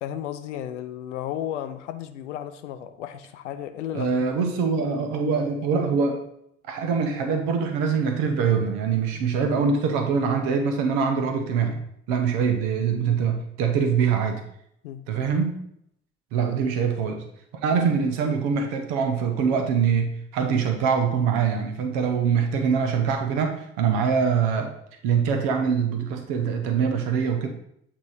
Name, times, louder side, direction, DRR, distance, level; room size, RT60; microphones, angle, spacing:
voice 1, 0.0-4.3 9.1-9.3 13.1-13.2 14.8-15.0, left 11 dB, 80° left, 10 dB, 0.5 m, -34 dB
voice 2, 3.9-6.2 6.7-11.8 12.1-14.4 15.1-15.6 16.3-17.2 17.6-24.7 25.0-27.5, right 6 dB, 65° right, 5 dB, 0.9 m, -23 dB
8.4 x 2.9 x 4.9 m, 0.73 s
figure-of-eight pair, 50°, 35 cm